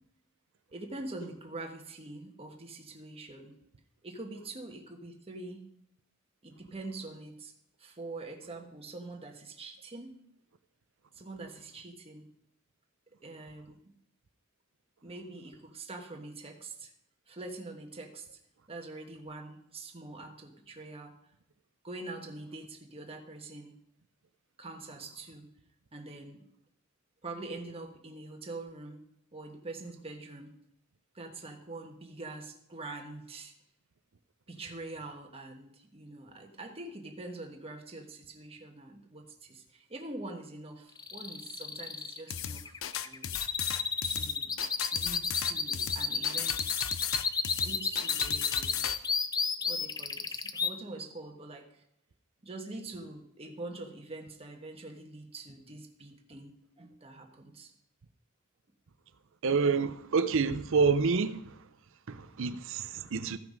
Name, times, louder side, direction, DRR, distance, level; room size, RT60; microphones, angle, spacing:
voice 1, 0.7-3.6 4.0-5.7 6.4-7.5 7.8-10.2 11.1-12.3 13.2-13.9 15.0-16.9 17.3-18.3 18.7-21.1 21.8-23.8 24.6-25.5 25.9-26.4 27.2-29.1 29.3-30.5 31.1-33.5 34.5-43.3 44.0-44.5 44.9-46.9 47.6-48.9 49.6-51.8 52.4-57.7, right 2 dB, 30° right, 1.3 m, -44 dB
sound 1, 41.0-50.7, left 5 dB, 20° left, 0.5 m, -32 dB
sound 2, 42.3-49.0, left 10 dB, 65° left, 0.5 m, -35 dB
voice 2, 59.4-61.4 62.1-63.4, right 5 dB, 65° right, 0.6 m, -28 dB
14.5 x 6.0 x 5.2 m
head